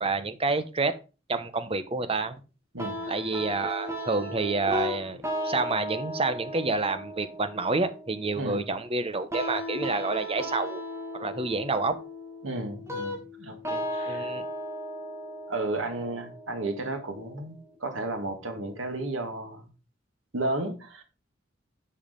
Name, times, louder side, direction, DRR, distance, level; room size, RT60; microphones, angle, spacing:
voice 1, 0.0-0.9 1.3-2.4 3.1-10.8 11.1-11.9 14.1-14.4, right 3 dB, 30° right, 1.0 m, -28 dB
sound 1, 2.8-17.7, equal, 15° right, 2.0 m, -36 dB
voice 2, 8.4-8.7 12.4-14.3 15.5-19.7 20.3-21.0, right 2 dB, 85° right, 2.1 m, -33 dB
10.5 x 4.9 x 5.2 m
head